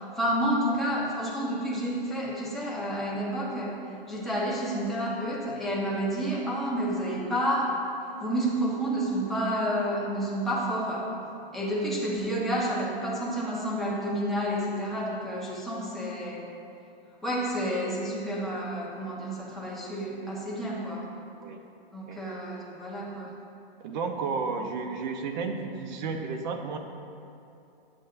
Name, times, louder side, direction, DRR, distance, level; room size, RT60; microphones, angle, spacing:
voice 1, 0.2-3.7 4.1-7.8 8.2-11.1 11.5-16.4 17.2-21.0 21.9-23.3, equal, ahead, -6 dB, 1.1 m, -30 dB
voice 2, 23.8-26.8, right 4 dB, 50° right, 5 dB, 0.8 m, -32 dB
9.1 x 8.7 x 2.6 m, 2.7 s
hypercardioid pair, 135°, 31 cm